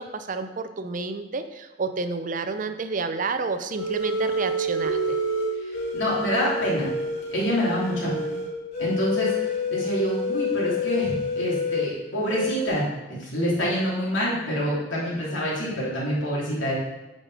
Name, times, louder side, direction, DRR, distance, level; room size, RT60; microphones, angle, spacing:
voice 1, 0.0-5.2 7.9-8.5, right 4 dB, 40° right, 9 dB, 0.5 m, -30 dB
sound 1, 3.8-11.9 12.3-12.7, left 1 dB, 35° left, 2.6 m, -28 dB
Keyboard (musical), 4.9-7.7, right 2 dB, 65° right, 1.2 m, -36 dB
voice 2, 5.6-6.9 7.3-8.1 8.8-12.8 13.1-16.7, equal, 75° left, -6 dB, 3.0 m, -26 dB
8.7 x 5.4 x 4.9 m, 1.0 s
head